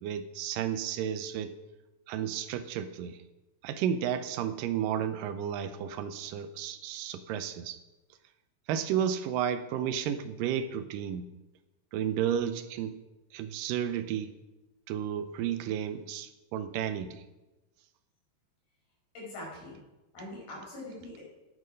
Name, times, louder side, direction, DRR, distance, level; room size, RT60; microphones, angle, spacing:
voice 1, 0.0-1.6 2.1-3.2 3.6-7.8 8.7-11.3 11.9-13.0 13.3-14.3 14.9-17.2, right 9 dB, 85° right, 11 dB, 2.3 m, -32 dB
voice 2, 19.1-19.8 20.1-21.2, left 1 dB, 85° left, -4 dB, 6.8 m, -42 dB
10.5 x 9.6 x 5.2 m, 1.0 s
omnidirectional pair, 4.0 m